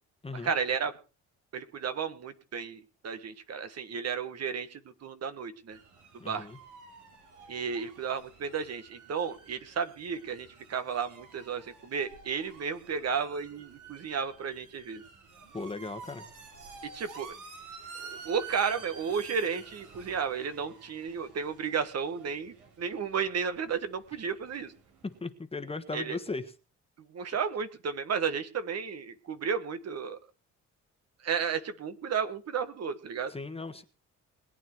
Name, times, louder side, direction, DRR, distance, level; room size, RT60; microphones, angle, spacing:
voice 1, 0.3-0.9 1.5-5.8 6.3-6.5 7.5-15.0 16.8-17.4 18.0-24.7 25.9-26.2 27.1-30.2 31.2-33.3, right 6 dB, 55° right, 10 dB, 1.6 m, -33 dB
sound 1, 5.7-25.2, right 5 dB, 80° right, 3.7 m, -50 dB
voice 2, 6.2-6.6 15.5-16.2 25.0-26.5 33.3-33.8, left 3 dB, 20° left, 8 dB, 1.4 m, -37 dB
21.0 x 9.0 x 4.6 m, 0.34 s
cardioid pair, 90°, 30 cm